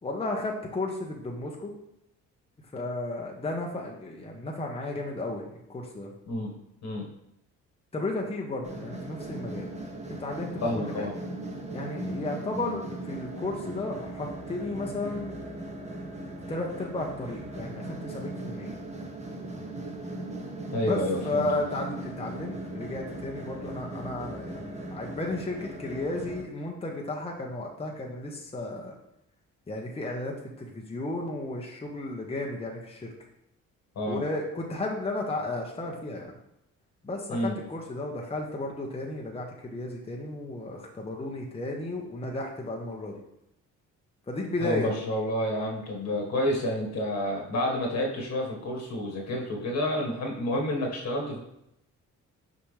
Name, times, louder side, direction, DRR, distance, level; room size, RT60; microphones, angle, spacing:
voice 1, 0.0-1.7 2.7-5.4 5.7-6.1 7.9-9.7 10.2-11.1 11.7-15.4 16.5-18.8 20.8-28.9 29.7-33.1 34.0-36.3 37.0-43.2 44.3-45.0, left 2 dB, 20° left, -1 dB, 1.0 m, -33 dB
voice 2, 6.3-6.6 6.8-7.1 10.6-11.1 20.7-21.5 33.9-34.3 37.3-37.6 44.6-51.4, left 1 dB, 60° left, -1 dB, 1.7 m, -29 dB
sound 1, 8.6-26.4, right 1 dB, 25° right, 1.1 m, -38 dB
5.8 x 5.0 x 3.3 m, 0.81 s
cardioid pair, 90°, 30 cm